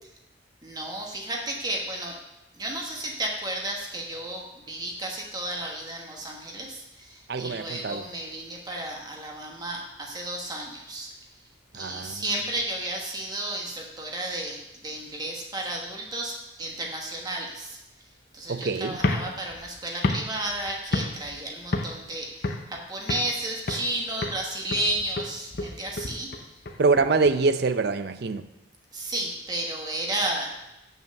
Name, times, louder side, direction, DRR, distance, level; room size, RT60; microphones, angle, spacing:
voice 1, 0.6-2.1 2.6-11.1 11.7-17.8 18.3-26.5 28.9-30.5, right 1 dB, 20° right, 0 dB, 1.2 m, -33 dB
voice 2, 7.3-8.0 11.7-12.2 18.5-19.0 26.8-28.5, right 4 dB, 55° right, 10 dB, 0.5 m, -24 dB
sound 1, 18.9-21.4 21.7-22.1 22.4-23.4 23.7-24.0 24.2-27.3, left 2 dB, 55° left, 0.7 m, -31 dB
7.1 x 5.9 x 6.6 m, 0.92 s
head